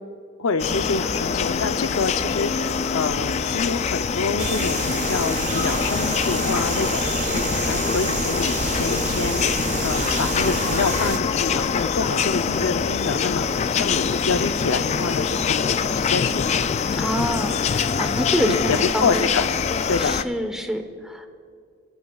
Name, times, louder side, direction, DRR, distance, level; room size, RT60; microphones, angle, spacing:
voice 1, 0.4-2.5 2.9-7.1 7.6-9.5 9.8-13.5 13.8-15.7 15.9-16.7 18.4-19.5 19.9-20.1, left 4 dB, 80° left, 9 dB, 0.7 m, -26 dB
sound 1, 0.6-20.2, left 6 dB, 30° left, 0.3 m, -24 dB
sound 2, 4.4-11.2, right 6 dB, 35° right, 0.4 m, -29 dB
voice 2, 17.0-19.2 20.0-21.3, equal, 5° right, 5 dB, 0.9 m, -26 dB
26.0 x 14.0 x 2.4 m, 2.2 s
head